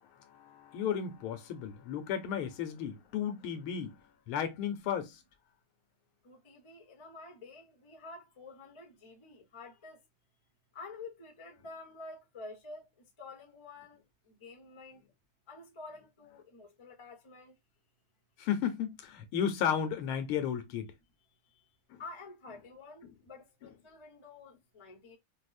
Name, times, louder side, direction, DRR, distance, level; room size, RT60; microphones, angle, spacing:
voice 1, 0.3-4.0 4.3-5.2 18.4-20.9 21.9-22.0, left 8 dB, 80° left, 1.6 m, -34 dB
voice 2, 6.2-10.0 10.7-12.9 13.2-14.0 14.3-15.0 15.5-17.5 22.0-25.2, left 3 dB, 30° left, 0.5 m, -49 dB
5.0 x 2.1 x 2.4 m
omnidirectional pair, 2.3 m